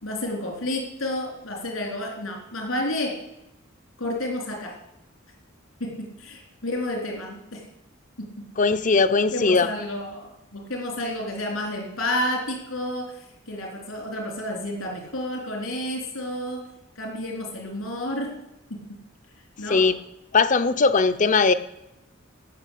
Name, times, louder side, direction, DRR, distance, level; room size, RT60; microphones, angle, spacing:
voice 1, 0.0-3.1 4.0-4.7 5.8-5.9 6.2-7.6 9.3-16.7 17.0-18.3 18.7-18.8 19.6-19.9, left 1 dB, 80° left, 0 dB, 3.8 m, -30 dB
voice 2, 8.6-9.7 19.7-19.9 20.3-21.5, left 4 dB, 35° left, 13 dB, 0.6 m, -19 dB
16.0 x 6.3 x 8.4 m, 0.90 s
head